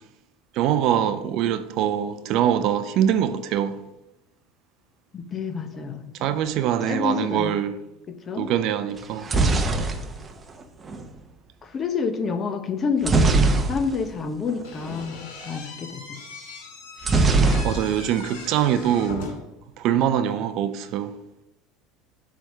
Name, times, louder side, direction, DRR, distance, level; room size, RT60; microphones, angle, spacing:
voice 1, 0.5-3.8 6.2-7.8 8.4-9.3 17.6-19.3 19.8-21.1, right 10 dB, 60° right, 0.6 m, -23 dB
voice 2, 5.1-6.1 6.8-7.5 8.1-8.5 9.3-9.6 11.6-16.0, left 5 dB, 30° left, 0.8 m, -29 dB
sound 1, 9.0-11.1 13.0-14.2 14.5-14.6 14.9-15.1 17.0-18.2 18.5-19.1, right 3 dB, 25° right, 0.8 m, -21 dB
Slam / Squeak, 14.6-19.6, left 3 dB, 85° left, 1.8 m, -39 dB
7.5 x 3.5 x 6.5 m
supercardioid pair, 110°, 0 cm